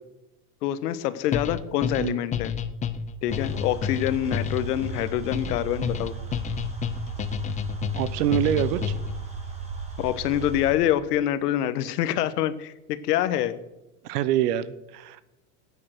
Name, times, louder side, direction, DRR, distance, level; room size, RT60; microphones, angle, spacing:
voice 1, 0.6-2.5 3.2-6.1 10.0-13.6, left 12 dB, 75° left, 13 dB, 1.2 m, -26 dB
sound 1, 1.3-9.2, left 8 dB, 15° left, 0.4 m, -30 dB
sound 2, 3.3-10.7, right 5 dB, 15° right, 3.1 m, -36 dB
voice 2, 7.9-8.9 14.0-15.2, right 11 dB, 70° right, 16 dB, 1.1 m, -25 dB
13.0 x 8.7 x 6.5 m, 0.97 s
supercardioid pair, 120°, 47 cm